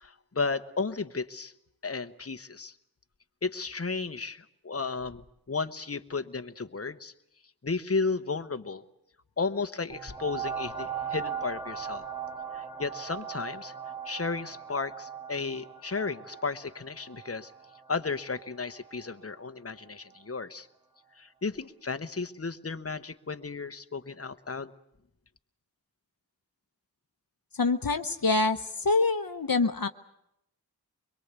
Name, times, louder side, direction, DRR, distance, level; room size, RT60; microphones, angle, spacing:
voice 1, 0.0-1.5 1.8-2.7 3.4-7.1 7.6-8.8 9.4-12.0 12.5-13.7 14.0-17.5 17.9-20.7 21.2-24.7, left 4 dB, 35° left, 10 dB, 1.0 m, -34 dB
sound 1, 9.9-19.2 19.8-19.9, right 7 dB, 10° right, 2.6 m, -39 dB
voice 2, 27.5-29.9, left 3 dB, 60° left, 10 dB, 0.9 m, -26 dB
24.0 x 22.0 x 8.2 m, 0.79 s
wide cardioid pair, 50°, 39 cm